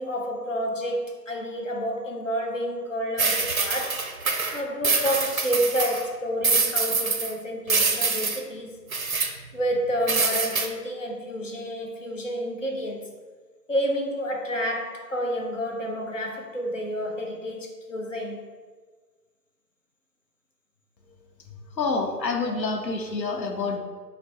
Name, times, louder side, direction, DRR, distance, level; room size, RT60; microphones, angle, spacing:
voice 1, 0.0-4.1 4.5-8.8 9.5-13.1 13.7-18.4, equal, 50° left, 1 dB, 0.7 m, -29 dB
sound 1, 3.2-6.1 6.4-7.3 7.7-8.4 8.9-9.3 10.1-10.7, right 4 dB, 55° right, 0.5 m, -25 dB
voice 2, 21.8-23.8, left 3 dB, 80° left, 2 dB, 0.9 m, -27 dB
4.9 x 2.2 x 4.4 m, 1.5 s
figure-of-eight pair, 165°, 50 cm